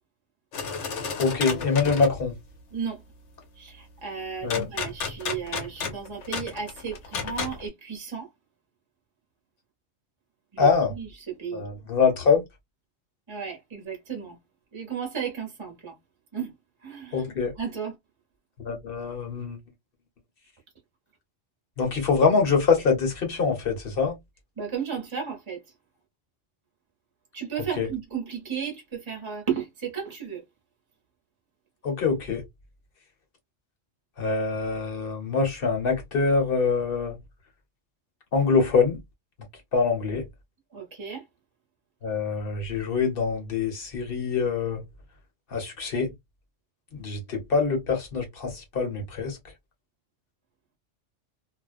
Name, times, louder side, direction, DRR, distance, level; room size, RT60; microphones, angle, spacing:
sound 1, 0.5-2.2 4.5-7.6, left 5 dB, 80° left, 1.1 m, -32 dB
voice 1, 1.2-2.3 4.4-4.7 10.6-10.9 11.5-12.4 17.1-17.5 18.6-19.6 21.8-24.2 27.8-27.9 31.8-32.4 34.2-37.2 38.3-39.0 39.7-40.3 42.0-44.8 45.5-46.1 47.0-49.4, left 5 dB, 55° left, 1.1 m, -24 dB
voice 2, 2.7-3.0 3.6-8.3 10.5-11.7 13.3-14.4 14.7-16.0 16.3-16.5 16.8-17.3 17.5-18.0 24.6-25.6 27.3-30.4 40.7-41.3, right 7 dB, 30° right, 0.8 m, -34 dB
2.5 x 2.1 x 2.4 m
omnidirectional pair, 1.2 m